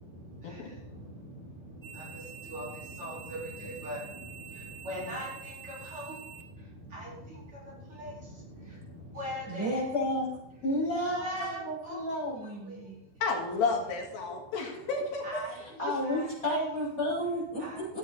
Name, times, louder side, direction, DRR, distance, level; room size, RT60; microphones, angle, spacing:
voice 1, 0.0-9.9 10.5-10.6 10.9-13.2 14.4-14.9 15.2-16.4 16.7-16.9 17.6-18.0, equal, 35° right, -6 dB, 5.2 m, -42 dB
sound 1, 1.8-7.6, right 8 dB, 60° right, 2.1 m, -48 dB
voice 2, 9.5-10.3 10.6-13.0 15.6-17.6 17.9-18.0, equal, 20° left, -7 dB, 5.8 m, -31 dB
voice 3, 13.2-15.4, left 4 dB, 80° left, 1 dB, 3.5 m, -31 dB
14.5 x 8.4 x 4.4 m, 0.86 s
omnidirectional pair, 4.1 m